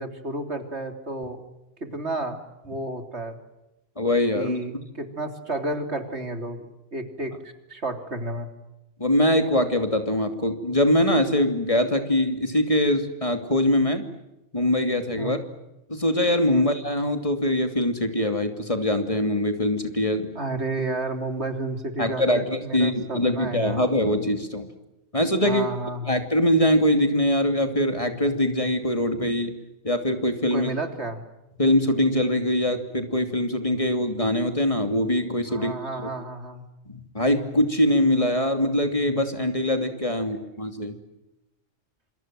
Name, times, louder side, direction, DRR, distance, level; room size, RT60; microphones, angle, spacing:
voice 1, 0.0-1.4 1.8-3.4 4.3-8.5 15.2-15.4 16.5-16.7 20.4-23.8 25.4-26.2 30.5-31.2 35.5-36.6 40.1-40.2, right 2 dB, 65° right, 6 dB, 3.6 m, -31 dB
voice 2, 4.0-4.8 9.0-14.0 14.5-15.4 15.9-20.3 22.0-24.7 25.1-25.7 26.1-29.5 29.8-30.7 31.6-35.7 36.9-41.0, left 1 dB, 30° left, 7 dB, 2.9 m, -23 dB
27.5 x 27.5 x 7.8 m, 0.92 s
omnidirectional pair, 1.2 m